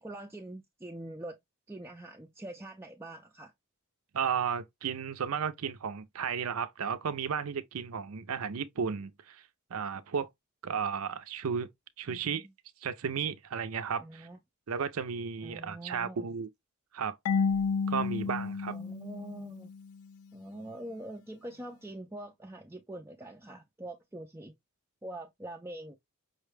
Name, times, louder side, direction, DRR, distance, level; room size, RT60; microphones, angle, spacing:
voice 1, 0.0-1.4 1.7-3.5 12.1-12.4 14.0-14.4 15.4-16.3 18.7-19.7 20.3-24.5 25.0-26.0, right 1 dB, 10° right, 0.4 m, -44 dB
voice 2, 4.1-9.4 9.7-10.3 10.6-11.7 12.0-12.4 12.8-14.3 14.7-16.5 16.9-17.2 17.9-18.8, right 6 dB, 80° right, 0.5 m, -34 dB
Marimba xylophone / Wood, 17.2-20.0, left 5 dB, 75° left, 0.3 m, -31 dB
5.5 x 2.2 x 3.2 m
head